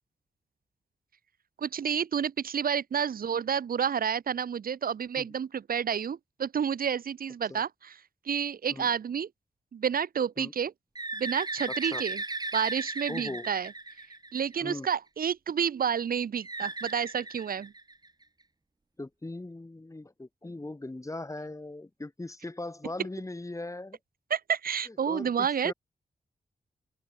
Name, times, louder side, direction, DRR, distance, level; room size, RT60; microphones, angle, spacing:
voice 1, 1.6-7.9 8.3-9.3 9.7-10.7 11.2-12.2 12.5-13.7 14.3-17.7 24.3-25.7, right 7 dB, 80° right, 2.7 m, -30 dB
Bird, 10.9-14.7 16.4-18.2, right 2 dB, 25° right, 5.9 m, -37 dB
voice 2, 11.7-12.0 13.1-13.5 14.6-14.9 19.0-24.0 24.9-25.7, left 2 dB, 20° left, 7.9 m, -39 dB
open air
cardioid pair, 85°, 15 cm